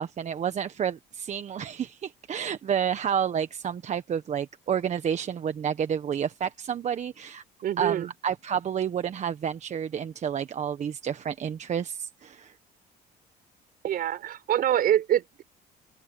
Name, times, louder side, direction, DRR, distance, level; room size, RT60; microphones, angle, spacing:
voice 1, 0.0-7.4 7.8-12.5, right 8 dB, 45° right, 1.1 m, -30 dB
voice 2, 7.6-8.1 13.8-15.4, right 11 dB, 60° right, 4.4 m, -25 dB
open air
cardioid pair, 110°, 17 cm